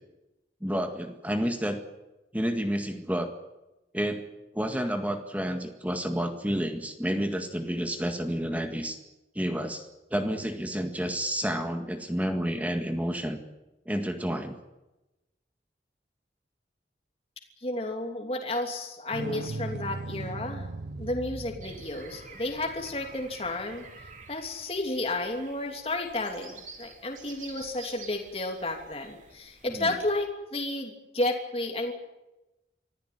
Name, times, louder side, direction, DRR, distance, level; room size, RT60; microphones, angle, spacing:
voice 1, 0.6-1.8 2.3-3.3 3.9-4.2 4.5-9.0 9.4-13.4 13.9-14.6 29.7-29.9, equal, 10° right, 6 dB, 1.8 m, -30 dB
voice 2, 17.6-20.7 21.0-23.8 24.3-31.9, left 2 dB, 35° left, 2 dB, 3.0 m, -32 dB
sound 1, 19.1-24.5 27.6-27.7, right 2 dB, 85° right, 0.9 m, -39 dB
sound 2, 21.6-30.2, right 4 dB, 45° right, 4.4 m, -50 dB
25.0 x 15.5 x 9.6 m, 0.98 s
head